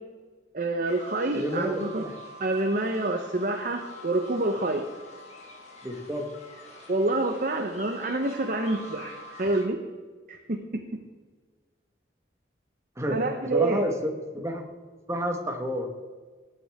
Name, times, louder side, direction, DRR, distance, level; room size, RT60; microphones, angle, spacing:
voice 1, 0.5-2.0 2.4-4.8 6.9-9.1 9.4-9.8 10.3-10.4 13.1-13.8, right 2 dB, 50° right, 4 dB, 0.9 m, -27 dB
sound 1, 0.9-9.7, left 1 dB, 40° left, 2.3 m, -46 dB
voice 2, 1.3-2.1 5.8-6.3 13.0-13.2 13.5-13.9 14.3-14.6 15.1-15.9, equal, 15° right, 3 dB, 1.4 m, -29 dB
18.0 x 9.4 x 3.6 m, 1.4 s
head